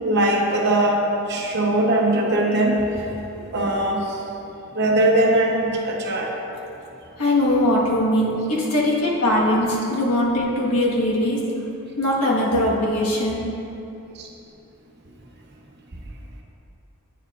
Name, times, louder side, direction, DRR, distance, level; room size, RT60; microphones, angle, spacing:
voice 1, 0.0-3.0 3.5-4.0 4.7-6.3 14.2-14.3, right 1 dB, 50° right, 0 dB, 0.8 m, -20 dB
voice 2, 7.2-11.4 12.0-13.4, left 1 dB, 85° left, -4 dB, 1.3 m, -21 dB
9.0 x 6.9 x 2.4 m, 2.9 s
head